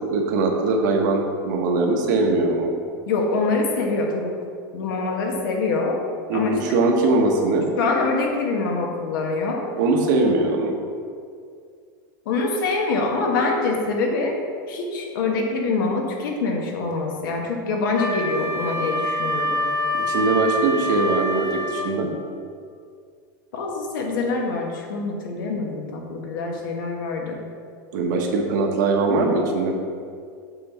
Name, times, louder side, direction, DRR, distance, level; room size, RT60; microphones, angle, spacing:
voice 1, 0.1-2.7 6.3-7.6 9.8-10.7 19.9-22.1 27.9-29.7, right 3 dB, 65° right, 2 dB, 1.1 m, -21 dB
voice 2, 3.1-4.3 4.7-6.0 6.3-6.5 7.8-9.6 12.2-14.4 14.7-19.7 23.5-27.4, left 3 dB, 85° left, 1 dB, 1.4 m, -25 dB
Wind instrument woodwind instrument, 17.9-21.9, equal, 60° left, 1.0 m, -26 dB
7.7 x 4.0 x 5.7 m, 2.2 s
supercardioid pair, 175°, 11 cm